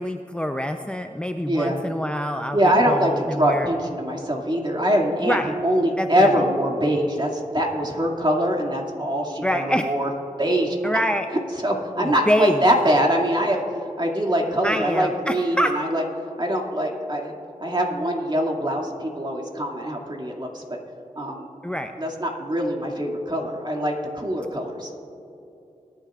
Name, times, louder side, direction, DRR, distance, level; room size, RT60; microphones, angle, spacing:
voice 1, 0.0-3.7 5.2-5.5 6.0-6.3 9.4-9.9 10.8-11.3 12.0-12.6 14.6-15.7 21.6-21.9, equal, 5° left, 6 dB, 0.6 m, -25 dB
voice 2, 1.5-1.8 2.5-5.4 5.6-10.1 10.4-10.8 11.6-16.0 16.4-17.3 17.6-20.6 21.2-21.4 22.0-24.9, equal, 35° right, -1 dB, 2.3 m, -23 dB
22.5 x 9.9 x 2.5 m, 2.8 s
cardioid pair, 40°, 14 cm